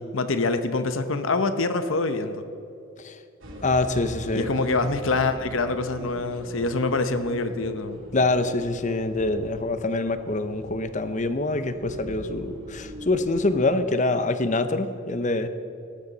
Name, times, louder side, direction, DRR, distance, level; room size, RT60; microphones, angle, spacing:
voice 1, 0.0-2.4 4.3-8.0, left 3 dB, 70° left, 9 dB, 0.8 m, -25 dB
sound 1, 3.4-13.6, right 1 dB, 70° right, 2.8 m, -41 dB
voice 2, 3.6-4.5 8.1-15.5, left 2 dB, 35° left, 10 dB, 0.7 m, -25 dB
18.0 x 13.5 x 4.0 m, 2.8 s
head